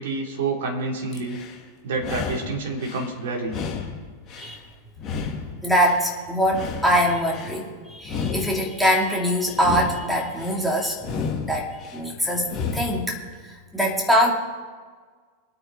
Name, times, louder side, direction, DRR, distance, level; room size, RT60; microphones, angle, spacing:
voice 1, 0.0-1.4 1.8-3.6, right 3 dB, 55° right, -1 dB, 3.1 m, -28 dB
sound 1, 1.1-1.6 2.0-3.1 3.5-4.6 5.0-6.1 6.5-7.6 8.0-9.1 9.5-10.6 11.0-12.0 12.4-13.1, left 5 dB, 30° left, 2.2 m, -32 dB
voice 2, 5.6-11.0 11.5-12.5 12.7-14.3, equal, ahead, -1 dB, 3.0 m, -23 dB
23.5 x 9.1 x 4.1 m, 1.5 s
figure-of-eight pair, 90°, 0 cm